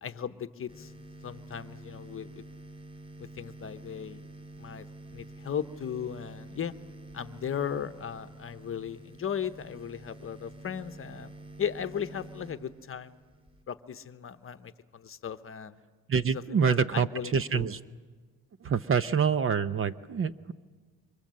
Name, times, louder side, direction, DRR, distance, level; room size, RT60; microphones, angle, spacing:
voice 1, 0.0-0.9 1.2-2.4 3.2-4.3 4.6-4.9 5.1-6.7 7.1-11.3 11.6-13.2 13.7-15.8 16.3-17.7, left 8 dB, 35° left, 11 dB, 1.0 m, -37 dB
sound 1, 0.7-13.6, right 2 dB, 15° right, 4.8 m, -48 dB
voice 2, 16.1-17.1 17.3-17.8 18.6-20.5, right 6 dB, 35° right, 13 dB, 0.7 m, -26 dB
26.5 x 24.5 x 7.6 m, 1.5 s
cardioid pair, 115°, 37 cm